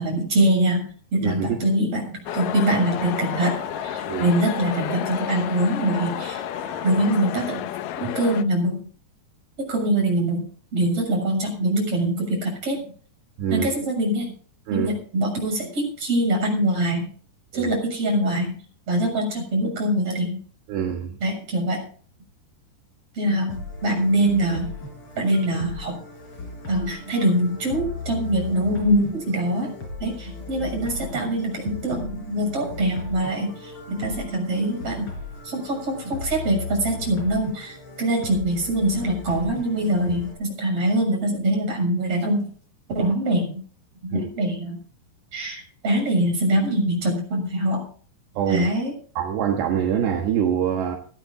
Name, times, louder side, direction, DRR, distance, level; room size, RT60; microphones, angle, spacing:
voice 1, 0.0-6.4 6.8-7.6 8.0-8.8 9.6-12.8 13.5-14.3 14.7-17.1 17.5-18.6 18.9-20.4 21.2-21.9 23.1-24.7 25.2-26.0 26.7-29.7 30.0-35.1 35.4-42.5 42.9-43.6 44.0-44.8 45.3-47.8 48.5-48.9, right 1 dB, 35° right, 0 dB, 7.6 m, -23 dB
voice 2, 1.2-1.6 4.1-4.3 13.4-13.7 14.7-14.9 17.5-17.7 20.7-21.2 44.1-44.3 48.4-48.7 49.2-51.0, right 8 dB, 75° right, 2 dB, 3.5 m, -24 dB
sound 1, 2.3-8.4, left 11 dB, 85° left, 1.9 m, -31 dB
sound 2, 2.3-7.1, left 2 dB, 50° left, 4.2 m, -39 dB
sound 3, 23.5-40.3, left 4 dB, 30° left, 5.6 m, -37 dB
17.0 x 12.0 x 3.8 m, 0.44 s
omnidirectional pair, 5.0 m